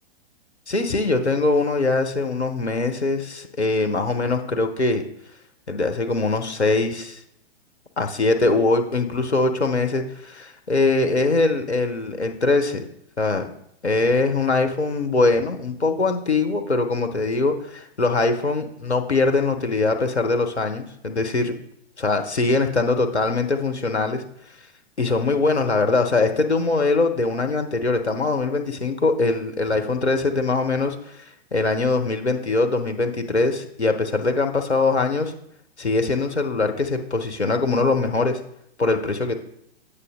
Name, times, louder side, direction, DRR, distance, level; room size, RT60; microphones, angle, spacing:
voice 1, 0.7-5.0 5.7-7.2 8.0-12.8 13.2-13.5 13.8-21.5 22.0-24.2 25.0-31.2 31.5-35.3 35.8-38.4 38.8-39.3, left 3 dB, 85° left, 5 dB, 1.1 m, -22 dB
8.4 x 6.8 x 3.7 m, 0.73 s
figure-of-eight pair, 115°, 33 cm